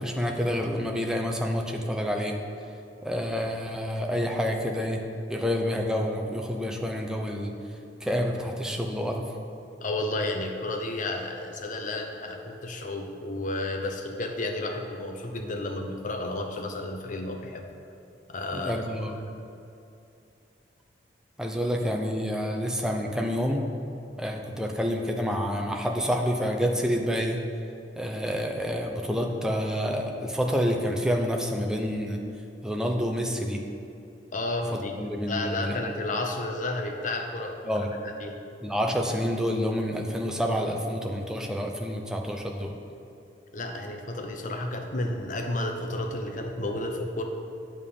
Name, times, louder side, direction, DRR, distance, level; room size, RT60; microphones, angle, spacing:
voice 1, 0.0-2.4 3.0-5.0 5.3-7.5 8.0-9.2 18.5-19.2 21.4-23.6 24.2-27.4 28.0-32.2 32.6-33.6 34.7-35.9 37.7-37.9 38.6-42.7, equal, 5° right, 1 dB, 0.6 m, -28 dB
voice 2, 9.8-17.7 18.3-19.1 34.3-38.4 43.5-47.2, left 2 dB, 45° left, 4 dB, 0.8 m, -32 dB
8.9 x 3.7 x 6.8 m, 2.7 s
head